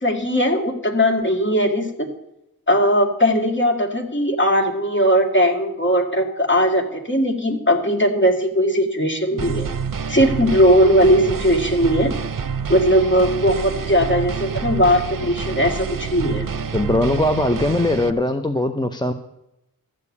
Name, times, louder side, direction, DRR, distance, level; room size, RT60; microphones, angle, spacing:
voice 1, 0.0-1.9 2.7-9.7 10.1-12.1 12.7-16.4, equal, 35° left, 3 dB, 2.0 m, -18 dB
sound 1, 9.4-18.1, right 6 dB, 65° right, 0.8 m, -28 dB
voice 2, 16.7-19.1, left 1 dB, 10° left, 7 dB, 0.6 m, -20 dB
13.0 x 7.0 x 8.4 m, 0.86 s
wide cardioid pair, 70°, 35 cm